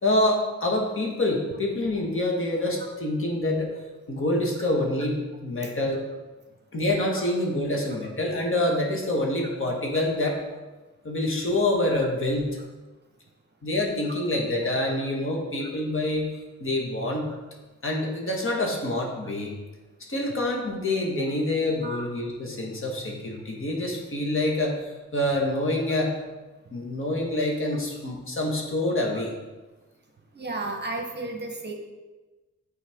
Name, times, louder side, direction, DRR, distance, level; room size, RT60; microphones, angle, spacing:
voice 1, 0.0-3.7 4.1-6.0 6.7-10.4 11.0-12.5 13.6-16.3 16.6-17.3 17.8-19.5 20.1-26.1 26.7-29.3, left 1 dB, 45° left, -1 dB, 1.5 m, -26 dB
voice 2, 30.3-31.7, right 2 dB, 35° right, 3 dB, 1.0 m, -33 dB
8.0 x 4.5 x 3.6 m, 1.2 s
cardioid pair, 85°, 29 cm